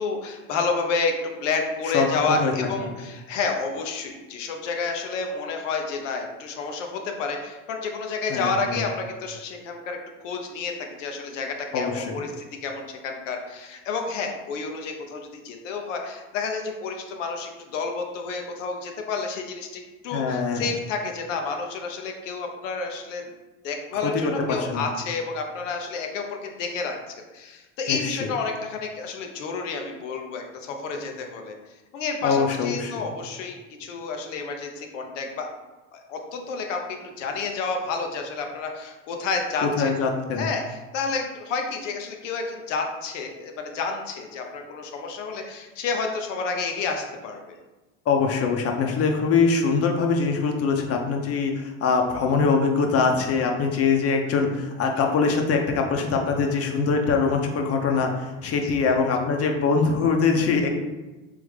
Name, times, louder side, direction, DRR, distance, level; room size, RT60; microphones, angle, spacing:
voice 1, 0.0-23.2 23.6-31.5 31.9-35.5 35.9-40.0 40.4-47.6 58.6-58.7, left 4 dB, 90° left, 3 dB, 0.8 m, -30 dB
voice 2, 1.8-2.5 2.8-2.9 8.3-8.8 11.7-12.2 20.1-20.6 24.5-24.8 27.9-28.3 32.2-33.1 39.6-40.5 48.1-58.1 58.4-60.7, left 5 dB, 40° left, 3 dB, 0.8 m, -23 dB
3.6 x 3.4 x 3.3 m, 1.1 s
supercardioid pair, 90°, 36 cm